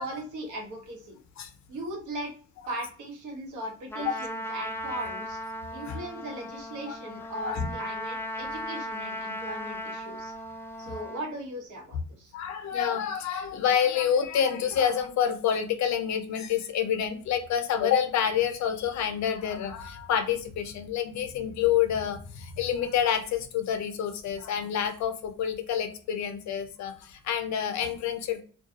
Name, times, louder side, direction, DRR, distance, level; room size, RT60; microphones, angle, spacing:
voice 1, 0.0-1.2 1.7-2.3 2.7-5.4 5.7-10.3 10.8-12.3, right 1 dB, 75° right, 1 dB, 1.0 m, -38 dB
Trumpet, 3.9-11.3, equal, 10° left, 0.3 m, -37 dB
voice 2, 7.4-7.7 12.3-28.4, left 8 dB, 65° left, 8 dB, 0.5 m, -28 dB
2.2 x 2.2 x 2.7 m, 0.41 s
cardioid pair, 90°, 30 cm